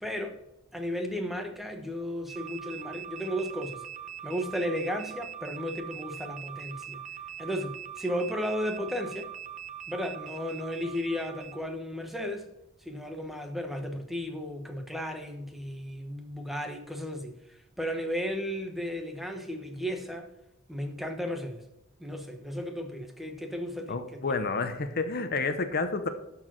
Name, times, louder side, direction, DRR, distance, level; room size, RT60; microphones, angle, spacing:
voice 1, 0.0-0.4 0.7-3.8 4.2-7.0 7.4-9.3 9.9-12.5 12.8-20.3 20.7-21.6 22.0-24.0, equal, ahead, 1.1 m, -34 dB
sound 1, 2.3-11.6, right 9 dB, 35° right, 0.9 m, -42 dB
voice 2, 23.9-26.1, left 3 dB, 50° left, 0.8 m, -30 dB
12.0 x 4.7 x 6.1 m
head